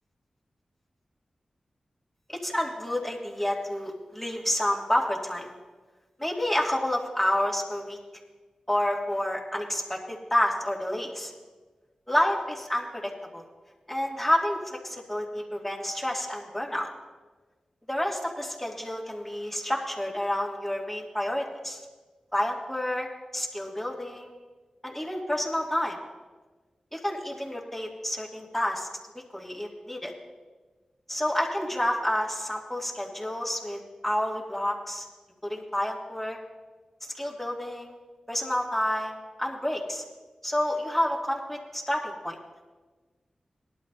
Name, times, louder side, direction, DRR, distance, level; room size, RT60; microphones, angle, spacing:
voice 1, 2.4-5.5 6.2-8.0 8.7-11.3 12.1-13.4 13.9-16.9 17.9-21.8 22.3-23.1 23.3-24.3 24.8-26.0 26.9-28.9 29.3-30.1 31.1-35.1 35.4-36.4 37.1-38.0 38.3-40.0 40.4-42.4, left 1 dB, 10° left, -2 dB, 2.4 m, -29 dB
18.0 x 12.0 x 2.7 m, 1.3 s
cardioid pair, 45°, 2 cm